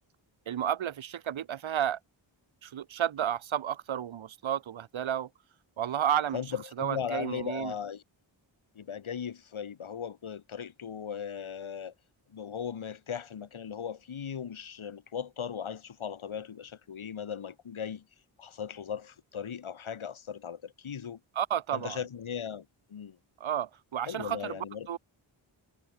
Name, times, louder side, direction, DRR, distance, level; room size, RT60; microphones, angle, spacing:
voice 1, 0.5-2.0 2.6-5.3 5.8-6.4 6.8-7.7 21.4-22.0 23.4-24.6 24.9-25.0, right 10 dB, 75° right, 0.9 m, -31 dB
voice 2, 6.3-8.0 8.8-11.9 12.3-18.1 18.4-21.2 21.7-23.2 24.1-25.0, left 7 dB, 85° left, 2.0 m, -38 dB
wide cardioid pair, 70°, 47 cm